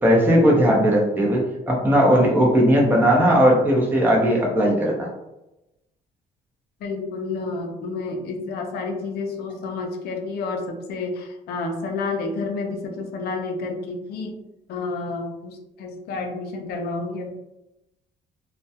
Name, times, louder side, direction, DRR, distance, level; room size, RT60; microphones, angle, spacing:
voice 1, 0.0-5.1, equal, 10° right, -2 dB, 0.7 m, -18 dB
voice 2, 6.8-14.4 14.7-17.4, left 3 dB, 70° left, 3 dB, 0.5 m, -30 dB
2.2 x 2.1 x 2.7 m, 0.93 s
cardioid pair, 110°, 17 cm